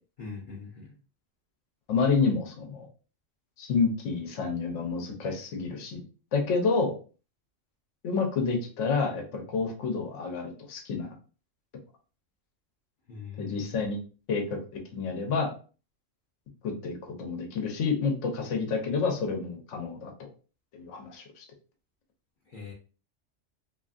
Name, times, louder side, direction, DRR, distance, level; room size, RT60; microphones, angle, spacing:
voice 1, 0.2-0.9 13.1-13.7 22.5-22.7, left 5 dB, 50° left, -3 dB, 0.7 m, -41 dB
voice 2, 1.9-2.9 3.6-6.0 6.3-7.0 8.0-11.1 13.4-14.0 14.3-14.4 14.7-15.5 16.6-20.1 20.7-21.5, left 4 dB, 75° left, 3 dB, 1.0 m, -29 dB
2.7 x 2.5 x 2.3 m, 0.37 s
omnidirectional pair, 1.3 m